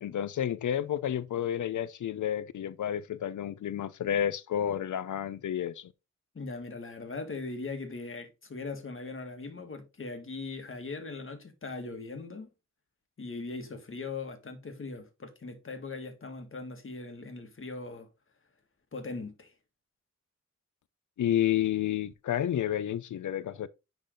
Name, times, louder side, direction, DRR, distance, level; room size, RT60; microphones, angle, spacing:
voice 1, 0.0-5.9 21.2-23.7, left 10 dB, 85° left, 0.6 m, -30 dB
voice 2, 6.3-12.5 13.2-18.1 18.9-19.5, left 3 dB, 45° left, 1.9 m, -40 dB
10.5 x 4.0 x 3.8 m
wide cardioid pair, 110°, 29 cm